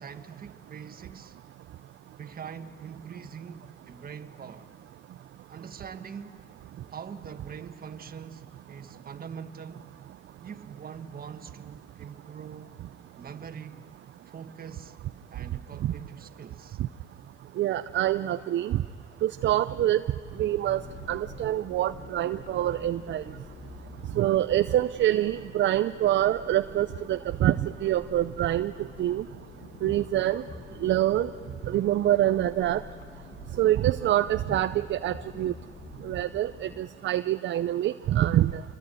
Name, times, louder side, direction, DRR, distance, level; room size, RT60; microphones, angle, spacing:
voice 1, 0.0-1.4 2.2-4.7 5.5-6.4 6.9-9.8 10.4-12.7 13.1-13.8 14.2-15.0 15.3-16.8, right 7 dB, 50° right, 1.7 m, -43 dB
voice 2, 17.6-18.8 19.2-20.0 20.4-20.8 21.1-23.2 24.1-29.2 29.8-30.4 30.8-31.3 31.7-32.8 33.6-35.5 36.0-38.6, right 13 dB, 65° right, 0.6 m, -25 dB
sound 1, 20.2-36.8, left 5 dB, 50° left, 2.1 m, -46 dB
27.0 x 23.5 x 9.3 m
cardioid pair, 90°, 20 cm